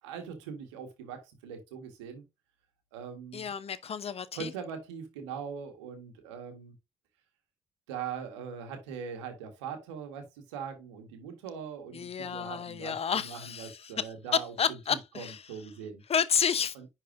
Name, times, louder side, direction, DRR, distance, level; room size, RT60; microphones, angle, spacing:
voice 1, 0.0-2.2 2.9-3.5 4.3-6.7 7.9-16.0 16.7-16.9, right 7 dB, 85° right, 1.6 m, -41 dB
voice 2, 3.3-4.3 11.9-13.7 14.6-15.0 16.1-16.7, left 7 dB, 45° left, 0.8 m, -30 dB
10.0 x 4.2 x 2.6 m
hypercardioid pair, 45°, 15 cm